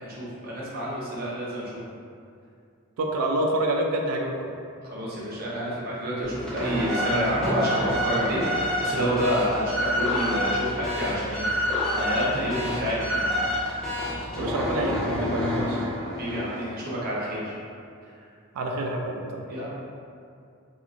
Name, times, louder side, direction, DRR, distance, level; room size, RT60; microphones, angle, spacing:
voice 1, 0.0-1.8 4.9-13.3 16.0-17.5 19.5-19.7, equal, 40° right, -7 dB, 0.6 m, -28 dB
voice 2, 3.0-4.5 14.3-15.8 18.5-19.4, right 1 dB, 80° right, 1 dB, 0.4 m, -27 dB
sound 1, 6.2-16.8, left 1 dB, 5° left, 0.4 m, -28 dB
3.0 x 2.3 x 2.4 m, 2.4 s
head